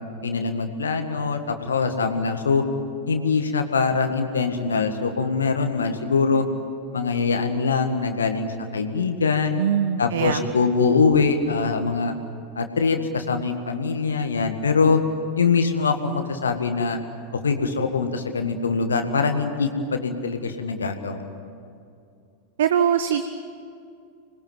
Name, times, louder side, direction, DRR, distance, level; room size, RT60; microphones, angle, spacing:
voice 1, 0.2-2.6 3.1-6.5 6.9-9.6 10.0-12.1 12.6-15.0 15.4-17.0 17.4-21.2, left 4 dB, 75° left, 6 dB, 1.8 m, -23 dB
voice 2, 9.6-10.5 22.6-23.2, right 9 dB, 60° right, 10 dB, 1.0 m, -22 dB
26.5 x 21.0 x 9.2 m, 2.4 s
figure-of-eight pair, 90°, 0 cm